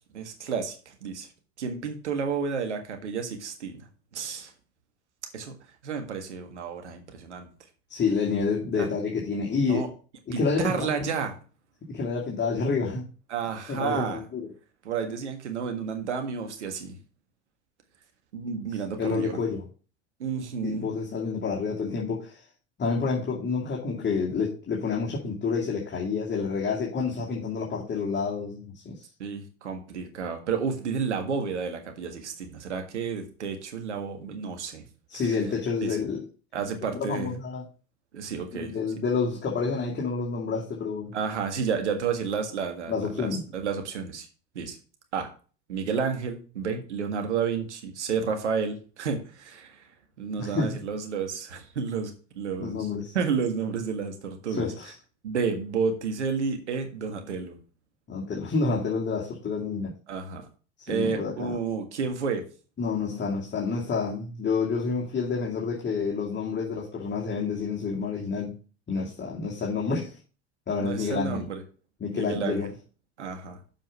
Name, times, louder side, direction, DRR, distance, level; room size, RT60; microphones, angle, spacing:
voice 1, 0.1-1.3 1.6-4.5 5.3-5.6 5.8-7.5 8.7-8.9 9.5-9.9 10.3-11.4 13.3-14.2 14.8-17.0 18.3-19.4 20.2-20.9 29.2-34.8 35.1-35.2 35.8-36.0 36.5-37.3 38.1-38.7 41.1-44.3 44.6-44.8 45.1-45.3 45.7-49.8 50.2-52.9 53.1-54.7 55.2-57.6 60.1-60.5 60.9-62.4 70.8-71.6 72.1-72.7 73.2-73.6, right 6 dB, 85° right, 5 dB, 1.8 m, -31 dB
voice 2, 7.9-9.9 10.3-11.0 11.9-13.0 13.7-14.5 19.0-19.7 20.6-22.4 22.8-29.0 35.1-36.2 36.8-37.6 38.5-41.1 42.9-43.4 50.4-50.8 52.6-53.2 54.5-54.9 58.1-59.9 60.9-61.6 62.8-68.6 68.9-70.1 70.7-71.4 72.0-72.7, left 4 dB, 30° left, -3 dB, 2.3 m, -29 dB
7.3 x 5.2 x 6.3 m, 0.38 s
hypercardioid pair, 75°, 34 cm